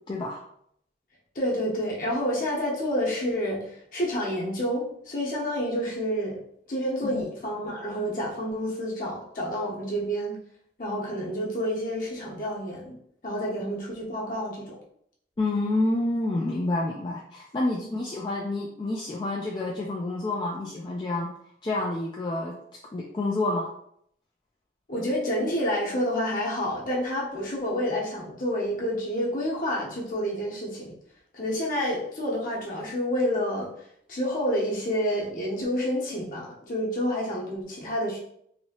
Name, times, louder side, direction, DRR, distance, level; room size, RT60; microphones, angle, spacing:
voice 1, 0.1-0.4 7.0-7.3 15.4-21.3 21.6-22.5 22.9-23.7, left 2 dB, 25° left, -3 dB, 0.3 m, -28 dB
voice 2, 1.3-6.4 6.7-10.4 10.8-12.9 13.2-14.8 17.7-17.9 24.9-30.9 31.3-38.2, equal, 50° left, -4 dB, 0.9 m, -29 dB
3.0 x 2.7 x 2.8 m, 0.70 s
head